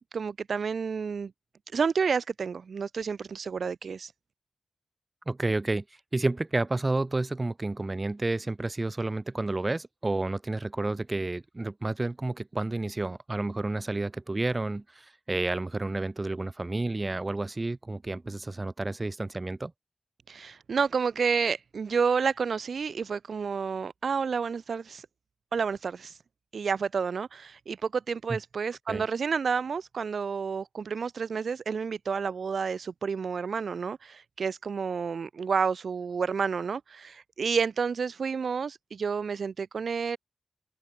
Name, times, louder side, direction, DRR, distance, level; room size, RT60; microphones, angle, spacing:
voice 1, 0.1-1.3 1.7-4.1 20.3-25.1 25.5-26.2 26.5-40.2, right 5 dB, 65° right, 2.7 m, -30 dB
voice 2, 5.3-5.8 6.1-19.7 28.9-29.0, right 2 dB, 25° right, 7.7 m, -30 dB
wide cardioid pair, 125°, 0 cm